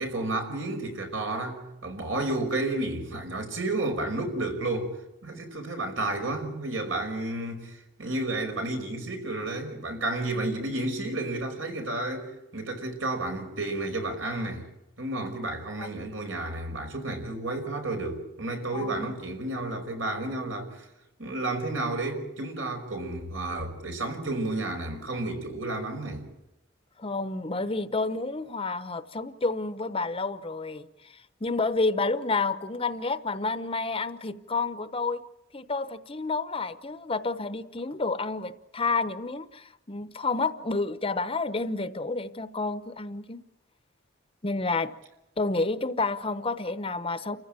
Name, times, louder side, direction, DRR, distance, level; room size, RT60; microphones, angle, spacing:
voice 1, 0.0-5.0 5.2-14.7 15.0-20.8 21.2-26.3, right 2 dB, 75° right, 5.5 m, -31 dB
voice 2, 18.7-19.1 27.0-30.8 31.4-35.2 35.5-43.4 44.4-44.9 45.4-47.4, left 3 dB, 30° left, 0.9 m, -30 dB
29.5 x 15.0 x 9.0 m
head